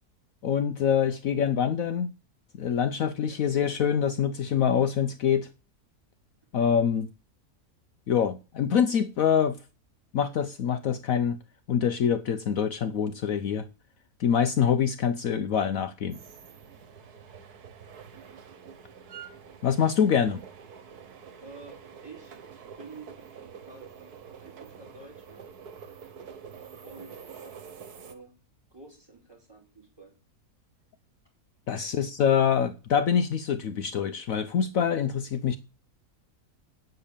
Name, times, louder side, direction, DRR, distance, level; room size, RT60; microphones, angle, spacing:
voice 1, 0.4-2.1 2.6-5.5 6.5-7.1 8.1-9.6 10.1-11.4 11.7-13.7 14.2-16.2 19.6-20.4 31.7-35.6, left 8 dB, 65° left, 1.1 m, -25 dB
sound 1, 16.1-28.1, right 7 dB, 75° right, 1.8 m, -47 dB
voice 2, 21.4-22.4 22.8-23.3 23.6-25.5 26.8-27.8 28.0-28.4 28.7-30.1 31.7-31.9, right 3 dB, 15° right, 5.0 m, -49 dB
9.2 x 6.8 x 8.7 m
omnidirectional pair, 1.7 m